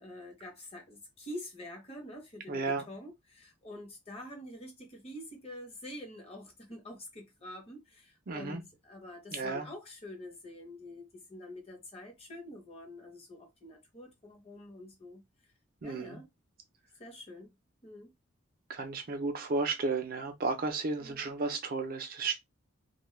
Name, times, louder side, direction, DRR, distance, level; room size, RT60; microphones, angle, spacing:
voice 1, 0.0-15.2 15.8-16.3 17.0-17.5 17.8-18.1 21.0-21.3, left 1 dB, 30° left, 0.8 m, -46 dB
voice 2, 2.5-2.8 8.3-8.6 9.3-9.7 15.8-16.2 18.7-22.4, right 3 dB, 45° right, 0.5 m, -33 dB
2.2 x 2.0 x 3.1 m
head